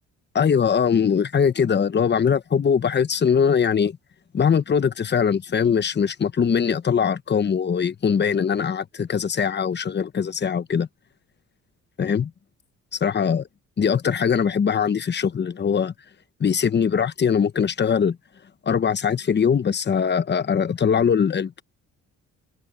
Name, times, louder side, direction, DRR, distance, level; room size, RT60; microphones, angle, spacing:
voice 1, 0.3-4.0 4.3-10.9 12.0-12.3 12.9-13.4 13.8-15.9 16.4-18.2 18.6-21.6, left 7 dB, 35° left, 1.0 m, -21 dB
open air
cardioid pair, 90°, 30 cm